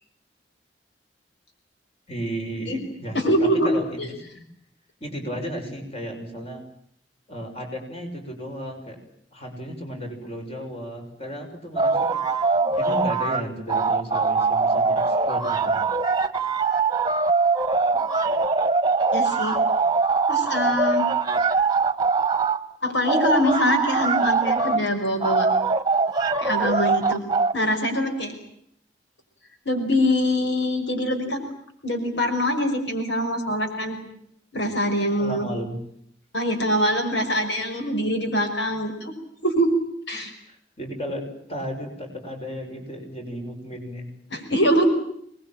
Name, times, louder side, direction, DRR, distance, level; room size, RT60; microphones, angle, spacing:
voice 1, 2.1-4.5 5.0-6.6 7.3-9.0 9.3-15.8 35.2-35.8 40.1-44.1, equal, 35° left, 3 dB, 6.4 m, -34 dB
voice 2, 3.1-3.7 4.0-4.1 19.1-19.6 20.3-21.1 22.8-25.5 26.4-27.2 27.5-28.3 29.7-31.4 31.8-34.0 34.5-35.5 36.3-39.2 39.4-39.7 40.1-40.3 44.3-44.9, equal, 85° left, 5 dB, 5.6 m, -23 dB
sound 1, 11.8-13.4 13.7-22.6 23.0-24.8 25.2-27.5, right 4 dB, 25° right, 1.4 m, -22 dB
26.5 x 21.0 x 9.0 m, 0.71 s
head